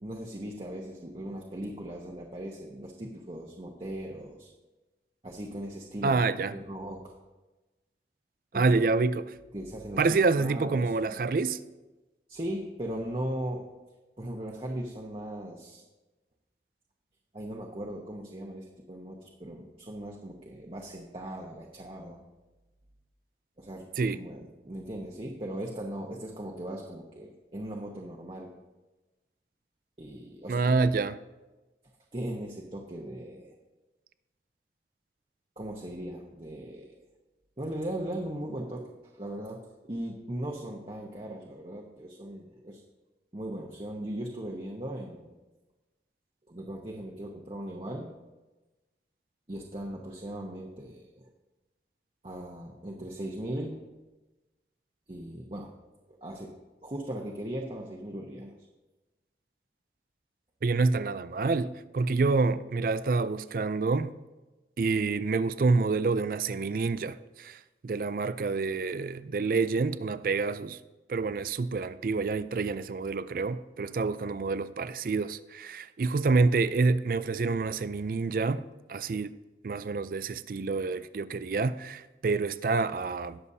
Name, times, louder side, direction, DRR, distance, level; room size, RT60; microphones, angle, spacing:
voice 1, 0.0-4.5 5.2-7.1 8.5-8.6 9.5-11.2 12.3-13.6 14.2-15.8 17.3-22.2 23.6-23.8 24.1-28.5 30.0-30.8 32.1-33.5 35.6-37.0 37.6-38.9 39.2-39.6 39.9-42.8 43.3-45.3 46.5-48.1 49.5-51.3 52.2-53.8 55.1-55.7 56.2-56.5 56.8-58.5, right 1 dB, 30° right, 1.0 m, -38 dB
voice 2, 6.0-6.6 8.5-9.3 10.0-11.6 24.0-24.2 30.5-31.2 60.6-64.1 64.8-70.8 71.1-78.6 78.9-79.3 79.6-83.5, right 4 dB, 50° right, 0.4 m, -27 dB
19.0 x 7.0 x 2.7 m
head